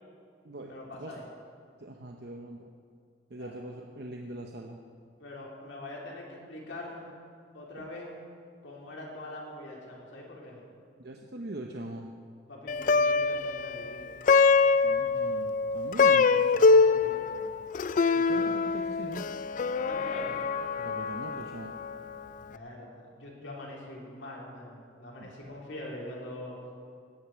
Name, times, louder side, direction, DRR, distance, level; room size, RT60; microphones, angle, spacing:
voice 1, 0.6-1.2 3.3-3.6 5.2-7.1 7.5-8.2 8.6-10.6 12.5-14.2 16.5-17.5 18.3-18.6 19.9-20.4 22.4-26.6, left 1 dB, 75° left, -3 dB, 3.6 m, -43 dB
voice 2, 1.8-2.7 3.3-4.8 7.8-7.9 11.0-12.1 14.8-16.3 18.2-19.3 20.8-21.7 25.2-25.3, right 1 dB, 55° right, 2 dB, 0.9 m, -41 dB
Plucked string instrument, 12.7-22.1, left 4 dB, 40° left, 0.3 m, -24 dB
16.5 x 10.0 x 6.2 m, 2.2 s
head